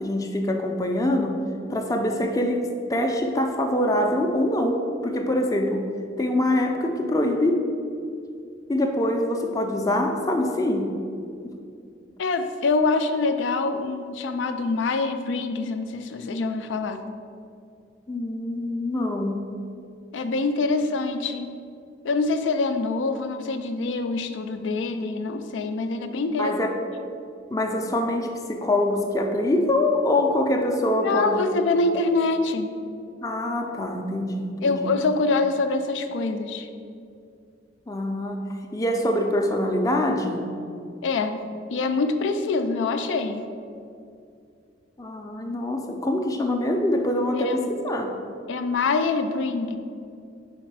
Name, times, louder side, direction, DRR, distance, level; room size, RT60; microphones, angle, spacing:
voice 1, 0.0-1.4 1.7-5.9 6.2-7.7 8.7-10.9 18.1-19.4 26.4-26.8 27.5-31.5 33.2-34.8 37.9-38.4 38.7-40.5 45.0-48.2, left 1 dB, 20° left, 3 dB, 0.4 m, -24 dB
voice 2, 12.2-17.0 20.1-21.5 22.0-26.5 31.0-32.7 34.6-36.7 41.0-41.4 41.7-43.4 47.5-47.7 48.5-49.8, left 3 dB, 80° left, 7 dB, 0.4 m, -25 dB
4.8 x 4.3 x 4.6 m, 2.4 s
head